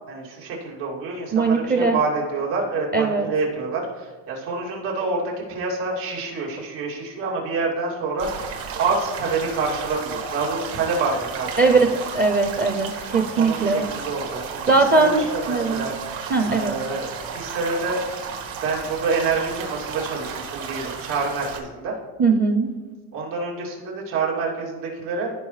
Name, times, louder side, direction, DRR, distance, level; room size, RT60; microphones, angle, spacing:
voice 1, 0.1-11.8 13.1-15.9 16.5-17.1 17.3-18.0 18.6-22.0 23.1-25.3, right 4 dB, 90° right, -3 dB, 2.9 m, -27 dB
voice 2, 1.3-2.0 2.9-3.3 11.6-11.9 12.1-13.8 14.7-15.9 16.3-16.8 22.2-22.7, right 3 dB, 20° right, 6 dB, 0.5 m, -20 dB
sound 1, 8.2-21.6, right 5 dB, 70° right, 1.8 m, -33 dB
15.5 x 5.3 x 3.2 m, 1.3 s
cardioid pair, 125°, 46 cm